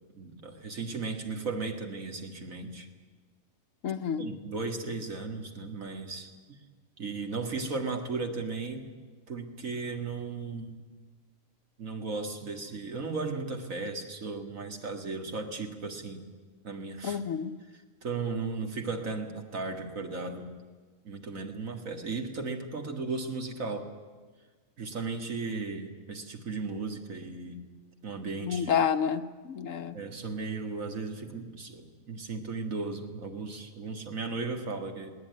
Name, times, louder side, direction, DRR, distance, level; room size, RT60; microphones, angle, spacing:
voice 1, 0.1-2.9 4.2-6.6 7.0-8.9 9.3-10.8 11.8-16.2 16.6-17.2 18.0-20.5 21.0-23.9 24.8-27.6 28.0-28.7 29.9-35.2, right 4 dB, 80° right, 4 dB, 2.5 m, -36 dB
voice 2, 3.8-4.3 17.0-17.5 28.4-30.0, left 7 dB, 70° left, 9 dB, 1.3 m, -29 dB
20.5 x 18.5 x 9.6 m, 1.4 s
omnidirectional pair, 1.4 m